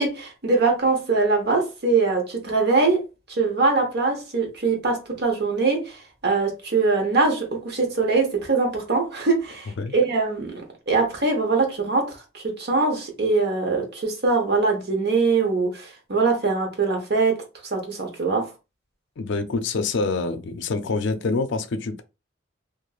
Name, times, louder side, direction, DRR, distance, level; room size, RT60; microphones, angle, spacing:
voice 1, 0.0-3.0 3.3-17.4 17.7-18.5, right 3 dB, 55° right, 0.9 m, -22 dB
voice 2, 19.2-22.0, left 3 dB, 65° left, 0.4 m, -26 dB
3.0 x 2.5 x 2.4 m
head